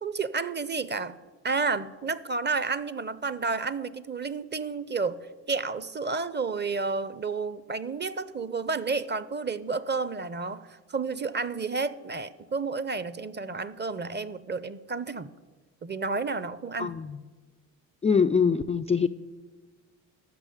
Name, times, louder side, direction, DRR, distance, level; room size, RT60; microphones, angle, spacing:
voice 1, 0.0-1.2 1.4-15.3 15.8-16.9, right 4 dB, 20° right, 16 dB, 0.7 m, -31 dB
voice 2, 16.8-17.2 18.0-19.1, left 6 dB, 15° left, 5 dB, 0.3 m, -23 dB
13.0 x 6.3 x 8.7 m, 1.3 s
hypercardioid pair, 60°, 48 cm